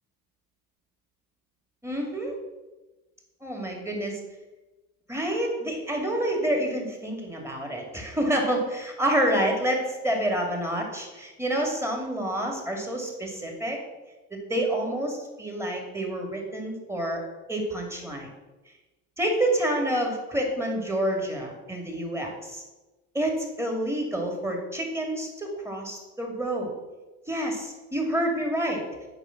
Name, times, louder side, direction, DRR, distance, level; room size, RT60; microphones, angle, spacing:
voice 1, 1.8-2.3 3.4-4.2 5.1-13.8 14.3-17.2 17.5-18.3 19.2-22.6 23.1-26.7 27.3-28.8, right 1 dB, 5° right, 1 dB, 2.5 m, -28 dB
8.2 x 5.1 x 5.9 m, 1.1 s
supercardioid pair, 85°, 40 cm